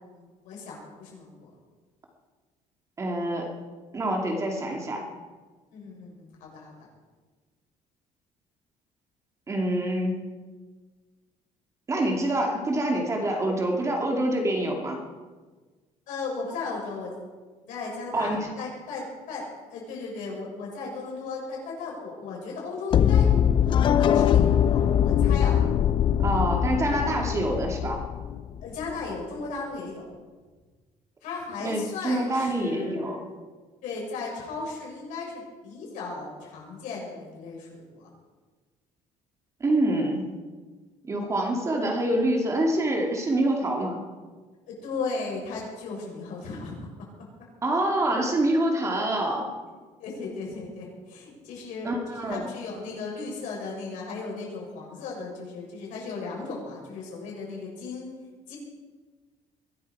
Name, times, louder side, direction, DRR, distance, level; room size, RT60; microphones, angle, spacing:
voice 1, 0.1-1.5 5.7-6.9 16.1-17.1 17.7-19.4 19.7-23.3 23.8-25.6 28.6-30.1 31.2-33.2 33.8-38.1 44.7-46.9 50.0-58.1 58.5-58.6, left 4 dB, 80° left, -2 dB, 6.8 m, -36 dB
voice 2, 3.0-3.5 3.9-5.0 9.5-10.3 11.9-15.0 18.1-18.5 26.2-28.0 31.6-33.2 39.6-40.3 41.1-44.0 47.6-49.5 51.8-52.5, right 1 dB, 25° right, 1 dB, 2.4 m, -26 dB
sound 1, 22.9-28.9, left 9 dB, 40° left, 0.5 m, -22 dB
22.0 x 13.0 x 4.8 m, 1.4 s
cardioid pair, 150°, 13 cm